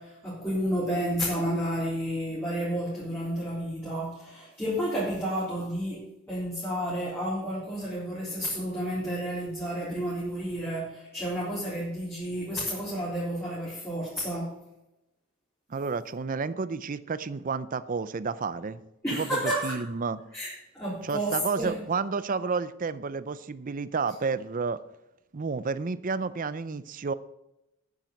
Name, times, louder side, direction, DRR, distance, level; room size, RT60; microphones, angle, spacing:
voice 1, 0.0-14.5 19.0-19.8 20.3-21.8, equal, 10° left, -9 dB, 3.7 m, -31 dB
voice 2, 15.7-18.8 19.1-20.2 21.0-24.8 25.3-27.1, right 4 dB, 40° right, 15 dB, 0.5 m, -31 dB
9.4 x 7.5 x 7.8 m, 0.90 s
head